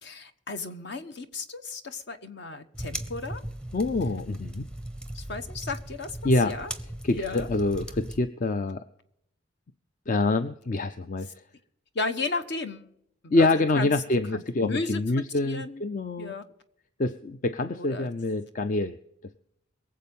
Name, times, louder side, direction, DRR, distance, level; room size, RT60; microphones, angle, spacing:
voice 1, 0.0-3.4 5.1-6.7 7.1-7.5 11.9-12.9 13.2-13.9 14.3-15.0 15.4-15.8 16.2-16.4 17.7-18.1, left 3 dB, 60° left, 9 dB, 1.1 m, -34 dB
sound 1, 2.7-8.2, right 1 dB, 5° left, 0.7 m, -38 dB
voice 2, 3.7-4.7 6.2-6.5 7.0-8.8 10.1-11.4 13.3-16.3 17.0-19.0, left 2 dB, 40° left, 11 dB, 0.5 m, -26 dB
22.5 x 7.6 x 5.4 m, 0.74 s
head